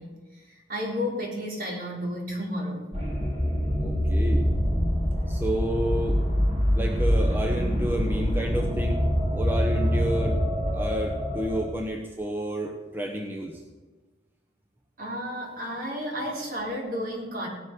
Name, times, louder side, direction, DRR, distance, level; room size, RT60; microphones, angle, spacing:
voice 1, 0.0-2.9 15.0-17.5, equal, 50° right, -1 dB, 3.9 m, -32 dB
sound 1, 2.9-11.7, equal, 35° right, 5.0 m, -25 dB
voice 2, 3.8-4.4 5.3-6.2 6.7-9.0 9.3-10.4 10.7-13.6, right 1 dB, 10° right, 1 dB, 1.1 m, -30 dB
17.0 x 11.0 x 6.1 m, 1.3 s
head